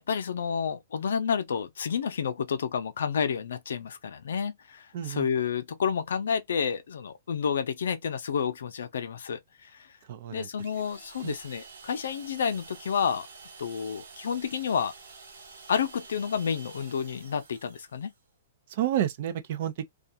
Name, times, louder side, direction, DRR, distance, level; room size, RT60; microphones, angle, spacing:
voice 1, 0.1-9.9 10.3-13.3 13.6-14.9 15.7-18.1, left 7 dB, 80° left, 0.5 m, -30 dB
voice 2, 4.9-5.3 10.1-10.5 11.2-11.3 18.7-19.8, right 11 dB, 55° right, 0.5 m, -30 dB
sound 1, 10.6-18.2, right 4 dB, 85° right, 1.2 m, -49 dB
2.3 x 2.3 x 2.7 m
hypercardioid pair, 145°, 0 cm